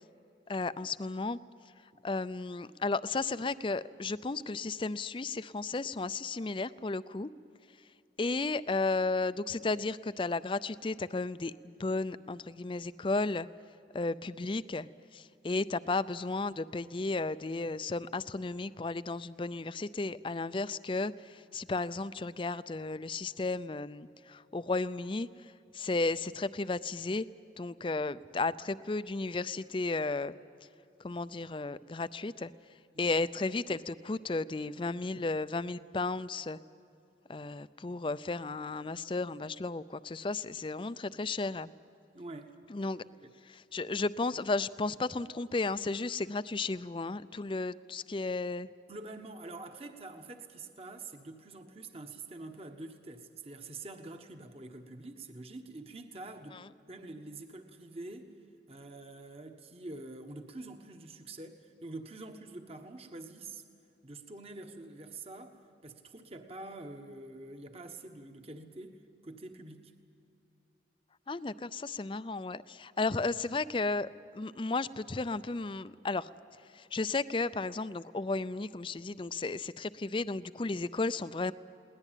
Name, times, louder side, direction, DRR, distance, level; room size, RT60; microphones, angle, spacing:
voice 1, 0.5-1.4 2.0-7.3 8.2-13.5 13.9-27.3 27.6-30.3 31.0-32.5 33.0-36.6 37.3-41.7 42.7-43.0 43.5-48.7 56.5-56.6 71.3-76.3 76.7-81.5, left 3 dB, 30° left, 15 dB, 0.5 m, -34 dB
voice 2, 42.1-42.6 43.2-43.3 48.9-58.3 58.7-63.6 64.0-69.9, right 2 dB, 35° right, 6 dB, 1.3 m, -46 dB
21.5 x 18.5 x 9.1 m, 2.7 s
head